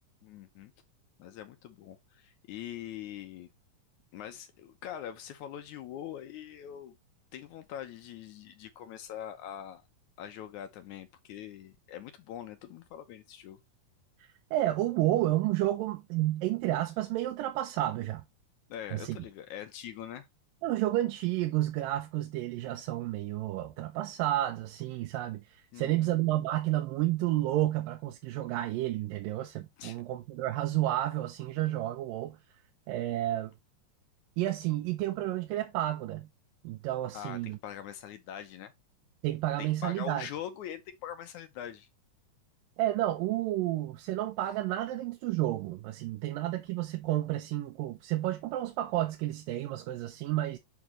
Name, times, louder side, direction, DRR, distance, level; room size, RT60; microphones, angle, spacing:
voice 1, 0.2-0.7 1.2-3.5 4.1-7.0 7.3-9.8 10.2-13.6 18.7-20.3 25.7-26.1 29.8-30.0 37.1-38.7 39.6-41.9, left 10 dB, 75° left, 2.0 m, -43 dB
voice 2, 14.5-18.2 18.9-19.2 20.6-32.4 32.9-33.5 34.4-36.3 36.6-37.6 39.2-40.3 42.8-50.6, right 15 dB, 80° right, 2.5 m, -31 dB
7.2 x 5.8 x 3.0 m
omnidirectional pair, 4.0 m